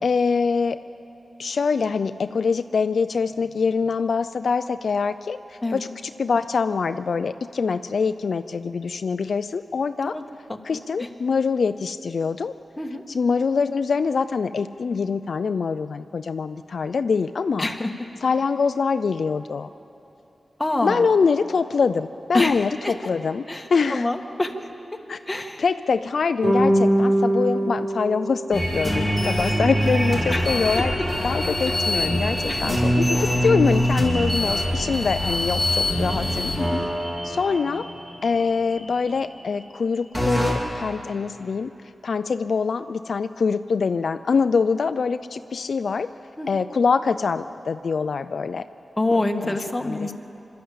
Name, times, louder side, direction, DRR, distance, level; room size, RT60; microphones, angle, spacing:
voice 1, 0.0-0.8 1.4-5.9 6.2-10.1 10.6-12.5 13.1-17.7 18.2-19.7 20.8-23.4 23.7-24.1 25.1-30.9 31.2-36.5 37.2-37.9 38.2-41.7 42.0-46.1 46.5-48.6 49.8-50.1, left 5 dB, 70° left, 10 dB, 0.4 m, -24 dB
voice 2, 10.5-11.1 12.8-13.0 17.6-17.9 20.6-21.1 22.3-22.9 23.5-24.7 25.3-25.6 29.8-29.9 30.3-31.0 32.5-32.6 36.5-36.9 46.4-46.7 49.0-50.1, left 2 dB, 15° left, 3 dB, 1.5 m, -27 dB
sound 1, 26.4-29.0, right 1 dB, 60° right, 5.9 m, -22 dB
sound 2, 28.5-39.2 40.1-40.5, equal, 15° right, 4.8 m, -24 dB
26.0 x 12.5 x 8.6 m, 2.9 s
wide cardioid pair, 95°, 0 cm